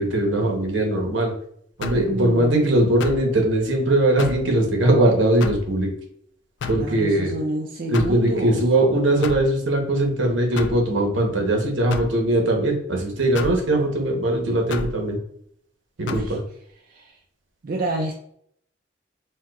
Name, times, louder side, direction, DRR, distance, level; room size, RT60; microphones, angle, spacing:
voice 1, 0.0-1.3 1.8-5.9 6.7-7.3 7.9-15.2 16.0-16.4, right 1 dB, 80° right, 2 dB, 0.9 m, -20 dB
sound 1, 1.8-2.1 3.0-3.3 4.2-4.5 5.4-5.7 6.6-6.9 7.9-8.2 9.2-9.5 10.6-10.8 11.9-12.2 13.3-13.6 14.7-15.0 16.1-16.3, left 4 dB, 65° left, 0.3 m, -30 dB
voice 2, 1.9-2.5 6.7-8.6 16.0-16.4 16.9-17.2 17.6-18.1, right 2 dB, 50° right, 1 dB, 0.3 m, -28 dB
4.3 x 2.2 x 2.3 m, 0.68 s
head